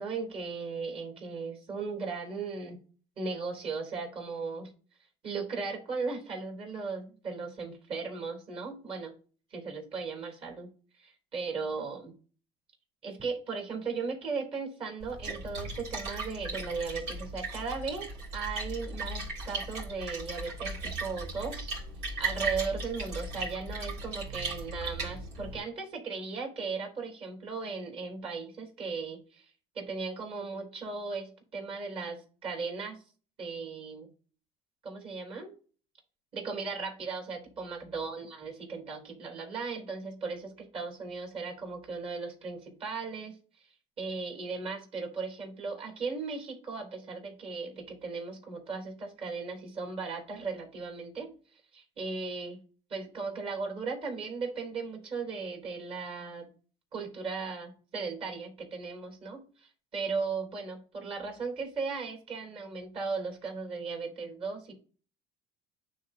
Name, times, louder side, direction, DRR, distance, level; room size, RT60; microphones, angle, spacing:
voice 1, 0.0-2.8 3.2-4.7 5.2-9.1 9.5-10.7 11.0-12.1 13.0-18.1 18.3-21.7 22.2-29.5 29.7-33.0 33.4-34.1 34.8-35.5 36.3-43.3 44.0-52.6 52.9-56.5 56.9-64.7, right 4 dB, 45° right, 2 dB, 3.1 m, -37 dB
Splash splatter, 15.0-25.6, right 3 dB, 80° right, 3.3 m, -37 dB
10.0 x 3.6 x 2.7 m, 0.39 s
supercardioid pair, 95°, 14 cm